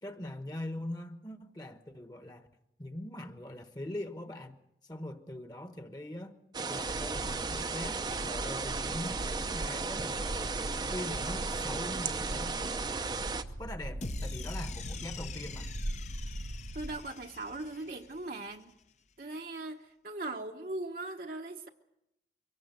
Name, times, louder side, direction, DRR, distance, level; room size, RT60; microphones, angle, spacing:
voice 1, 0.0-2.5 2.8-4.6 4.8-6.4 6.7-10.5 10.9-12.5 13.6-15.7, left 1 dB, 20° left, 1.2 m, -42 dB
sound 1, 6.5-13.4, right 4 dB, 25° right, 0.7 m, -35 dB
sound 2, 6.9-17.0, right 1 dB, 85° right, 0.9 m, -40 dB
sound 3, 14.0-18.3, left 3 dB, 40° left, 0.8 m, -43 dB
voice 2, 16.7-18.7 19.2-21.7, right 2 dB, 50° right, 1.0 m, -39 dB
23.5 x 17.5 x 6.9 m
head